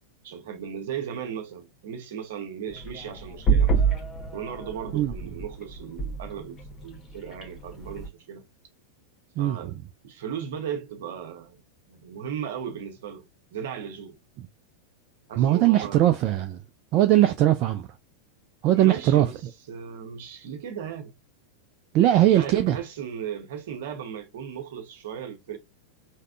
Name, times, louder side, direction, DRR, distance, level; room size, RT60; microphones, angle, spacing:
voice 1, 0.2-3.9 4.3-6.6 6.8-8.4 9.4-9.7 10.0-11.6 11.9-14.2 15.3-16.0 18.7-19.4 19.7-21.1 22.2-25.6, right 8 dB, 55° right, 0.8 m, -36 dB
sound 1, 2.7-8.1, right 5 dB, 25° left, 0.9 m, -28 dB
voice 2, 9.4-9.8 15.4-16.6 16.9-17.9 18.6-19.3 21.9-22.8, right 13 dB, 40° right, 0.3 m, -20 dB
3.4 x 2.1 x 2.4 m
figure-of-eight pair, 90°, 0 cm